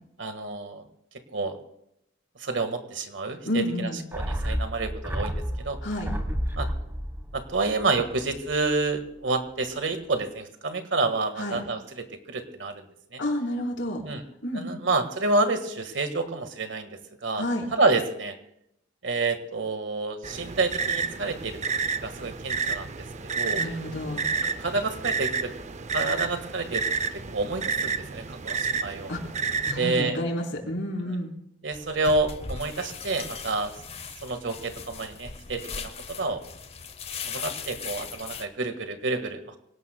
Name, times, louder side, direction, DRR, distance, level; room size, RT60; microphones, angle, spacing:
voice 1, 0.2-0.8 1.3-1.6 2.4-5.8 6.6-6.7 7.3-12.9 13.1-13.2 14.0-14.2 14.5-17.4 17.7-18.4 19.0-21.6 22.0-23.1 23.4-23.6 24.4-25.5 25.9-27.1 27.3-29.1 29.8-30.2 31.0-31.2 31.6-33.7 34.2-36.4 37.3-39.6, right 3 dB, 70° right, 7 dB, 1.7 m, -29 dB
voice 2, 3.5-4.0 5.8-6.1 11.4-11.6 13.2-14.0 14.4-14.8 17.4-17.7 23.6-24.3 29.1-29.2 29.7-31.3, left 1 dB, 65° left, -1 dB, 4.3 m, -30 dB
sound 1, 4.1-8.7 9.0-9.1, equal, 10° right, 1.3 m, -31 dB
sound 2, 20.2-29.8, right 5 dB, 35° right, 0.5 m, -30 dB
sound 3, 31.7-38.5, left 5 dB, 30° left, 0.8 m, -39 dB
26.0 x 18.0 x 2.3 m, 0.78 s
head